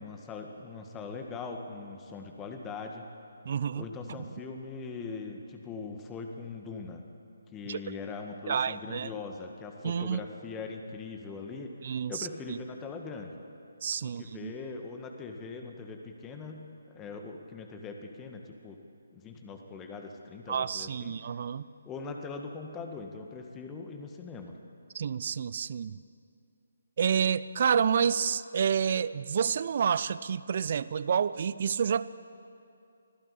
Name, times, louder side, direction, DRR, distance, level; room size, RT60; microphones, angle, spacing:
voice 1, 0.0-3.1 3.7-7.0 7.5-11.7 12.1-13.4 14.0-18.8 19.1-21.2 21.9-24.6, left 4 dB, 15° left, 4 dB, 1.9 m, -41 dB
voice 2, 3.5-3.8 4.2-4.3 7.7-7.8 8.5-9.1 9.8-10.2 11.8-12.1 13.8-14.5 20.5-21.6 24.9-26.0 27.0-32.0, right 7 dB, 45° right, 17 dB, 0.5 m, -29 dB
25.0 x 15.5 x 8.6 m, 2.5 s
figure-of-eight pair, 145°, 0 cm